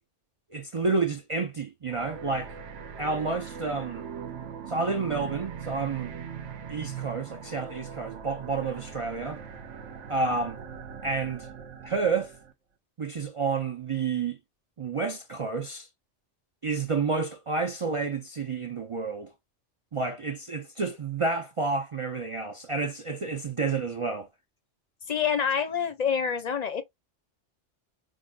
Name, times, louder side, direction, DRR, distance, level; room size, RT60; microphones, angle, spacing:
voice 1, 0.5-2.5 3.0-4.1 4.7-6.1 6.7-9.4 10.1-10.6 11.0-11.5 11.8-12.3 13.0-14.4 14.8-15.9 16.6-19.3 19.9-24.3, right 4 dB, 50° right, 0.4 m, -30 dB
sound 1, 1.9-12.5, right 7 dB, 80° right, 1.0 m, -40 dB
voice 2, 25.1-26.8, left 7 dB, 45° left, 0.6 m, -27 dB
5.3 x 2.5 x 2.2 m
omnidirectional pair, 1.2 m